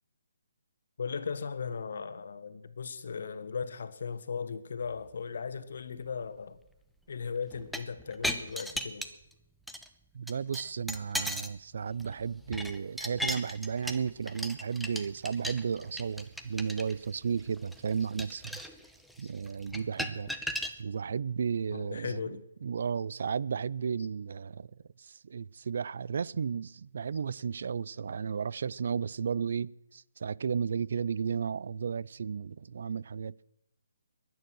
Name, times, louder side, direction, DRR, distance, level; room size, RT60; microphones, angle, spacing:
voice 1, 1.0-6.6 7.1-9.0 19.2-19.3 21.7-22.4, left 5 dB, 60° left, 1.5 m, -37 dB
sound 1, 7.5-9.3 9.7-9.9 10.3-11.6 11.9-20.8, equal, ahead, 0.8 m, -37 dB
voice 2, 10.1-18.6 19.2-20.3 20.8-24.7 25.0-33.4, right 6 dB, 60° right, 0.5 m, -34 dB
22.0 x 9.4 x 6.2 m
hypercardioid pair, 155°, 0 cm